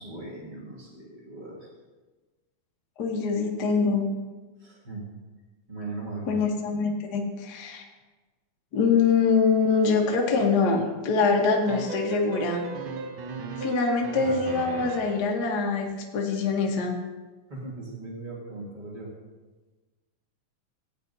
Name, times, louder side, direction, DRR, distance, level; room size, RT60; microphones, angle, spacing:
voice 1, 0.0-1.7 4.6-5.1 5.7-6.4 17.5-19.1, right 3 dB, 35° right, -4 dB, 0.7 m, -39 dB
voice 2, 3.0-4.0 6.3-7.8 8.7-12.7 13.6-15.9 16.1-17.0, left 4 dB, 70° left, 0 dB, 0.9 m, -24 dB
sound 1, 11.7-15.3, right 4 dB, 90° right, 1.1 m, -36 dB
15.5 x 9.2 x 2.7 m, 1.2 s
omnidirectional pair, 3.6 m